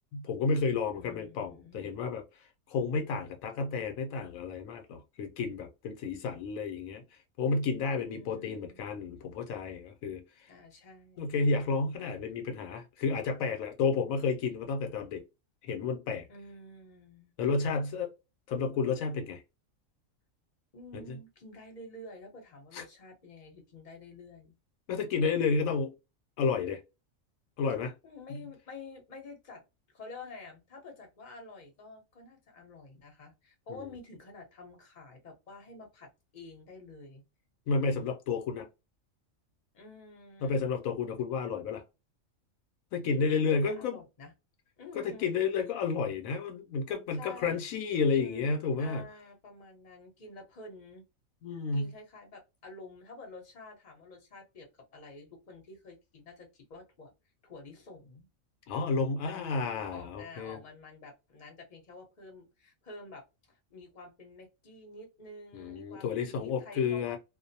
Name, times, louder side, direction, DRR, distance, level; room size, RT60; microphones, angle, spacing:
voice 1, 0.1-2.2 2.7-7.0 7.4-10.5 11.2-15.2 15.6-16.3 17.4-18.1 18.5-19.4 20.9-21.2 22.7-22.8 24.9-25.9 26.4-26.8 27.6-27.9 28.3-28.4 33.7-33.9 37.7-38.7 40.4-41.8 42.9-44.0 44.9-49.0 51.4-51.9 58.7-60.6 65.5-67.2, left 4 dB, 80° left, 1.0 m, -31 dB
voice 2, 0.9-2.0 7.9-8.8 10.5-11.4 16.3-17.3 20.7-24.5 28.0-29.6 29.9-37.2 39.7-40.7 43.5-44.3 44.8-45.3 47.2-47.6 48.1-51.0 51.7-57.1 57.4-58.3 59.2-67.2, left 3 dB, 40° left, 0.9 m, -49 dB
2.5 x 2.0 x 2.6 m
omnidirectional pair, 1.4 m